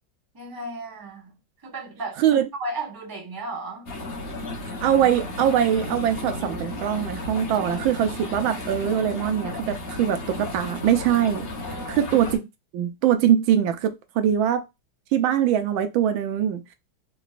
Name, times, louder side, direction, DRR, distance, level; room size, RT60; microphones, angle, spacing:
voice 1, 0.3-1.3 1.6-2.2 2.6-3.9 11.7-12.0, right 2 dB, 15° right, 0.7 m, -34 dB
voice 2, 2.2-2.5 4.8-11.5 11.9-12.5 12.7-14.6 15.1-16.6, right 10 dB, 90° right, 1.4 m, -22 dB
sound 1, 3.9-12.4, left 2 dB, 45° left, 0.8 m, -34 dB
3.8 x 2.3 x 2.4 m
omnidirectional pair, 2.1 m